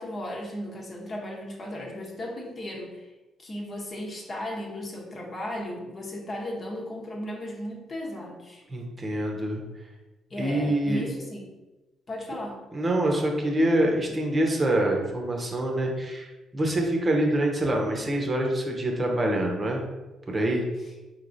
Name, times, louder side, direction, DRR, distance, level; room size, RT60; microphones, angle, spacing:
voice 1, 0.0-3.1 3.4-8.6 10.3-11.5 12.1-12.6 20.8-20.9, left 1 dB, 40° left, -1 dB, 1.0 m, -36 dB
voice 2, 8.7-9.6 10.4-11.0 12.7-16.3 16.5-19.8 20.3-20.7, right 1 dB, 30° right, 1 dB, 0.9 m, -25 dB
4.4 x 3.1 x 2.6 m, 1.1 s
supercardioid pair, 75°, 0 cm